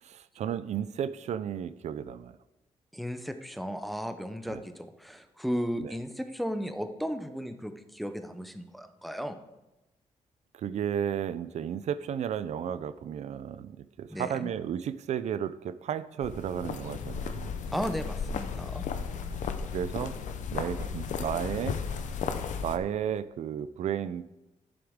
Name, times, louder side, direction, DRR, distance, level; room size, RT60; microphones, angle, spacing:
voice 1, 0.0-2.4 4.5-4.6 5.8-5.9 10.6-17.6 19.7-20.1 20.5-21.8 22.6-24.2, right 9 dB, 65° right, 14 dB, 0.4 m, -33 dB
voice 2, 2.9-9.4 14.1-14.5 17.7-18.9, equal, ahead, 8 dB, 0.5 m, -35 dB
sound 1, 16.2-22.8, left 6 dB, 80° left, 0.7 m, -34 dB
11.0 x 7.0 x 3.6 m, 0.99 s
wide cardioid pair, 160°, 12 cm